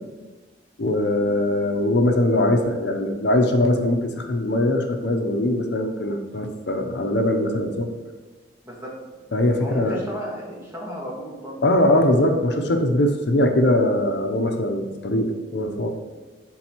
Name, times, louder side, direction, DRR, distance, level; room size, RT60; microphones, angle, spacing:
voice 1, 0.8-7.9 9.3-10.0 11.6-15.9, left 1 dB, 70° left, 4 dB, 0.6 m, -21 dB
voice 2, 9.3-12.0, equal, 15° right, -4 dB, 1.5 m, -35 dB
11.5 x 3.9 x 3.0 m, 1.2 s
head